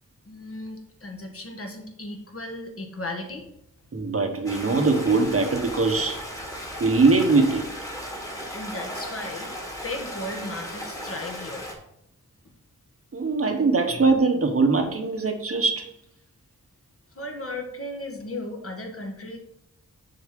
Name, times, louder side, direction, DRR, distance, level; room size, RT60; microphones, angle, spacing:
voice 1, 0.2-3.5 8.5-11.7 13.9-14.0 17.1-19.4, left 1 dB, 45° left, 3 dB, 1.4 m, -36 dB
voice 2, 3.9-6.2 6.8-7.7 13.1-15.9, right 3 dB, 45° right, 6 dB, 1.0 m, -21 dB
Stream, 4.4-11.7, equal, 10° left, 1.6 m, -36 dB
6.6 x 4.3 x 5.2 m, 0.77 s
wide cardioid pair, 105°, 31 cm